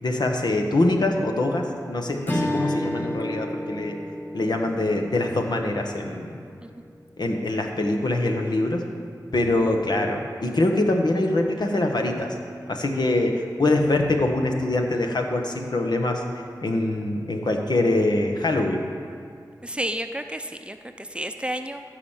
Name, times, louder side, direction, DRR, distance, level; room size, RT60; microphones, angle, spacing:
voice 1, 0.0-4.0 4.3-6.4 7.2-8.9 9.3-12.3 12.7-16.2 16.6-18.8, left 2 dB, 65° left, 2 dB, 1.3 m, -24 dB
Strum, 2.2-6.9, left 1 dB, 25° left, 1.7 m, -31 dB
voice 2, 19.6-21.8, right 1 dB, 15° right, 7 dB, 0.7 m, -31 dB
14.5 x 5.0 x 7.3 m, 2.3 s
cardioid pair, 45°, 8 cm